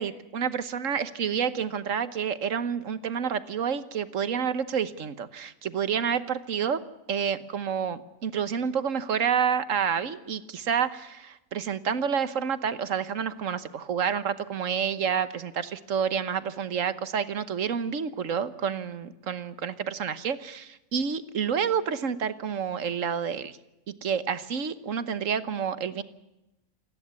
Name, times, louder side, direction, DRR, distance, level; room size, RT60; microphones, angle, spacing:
voice 1, 0.0-6.8 7.1-23.6 23.9-26.0, right 7 dB, 75° right, 13 dB, 1.4 m, -29 dB
28.5 x 11.0 x 9.5 m, 0.95 s
omnidirectional pair, 1.4 m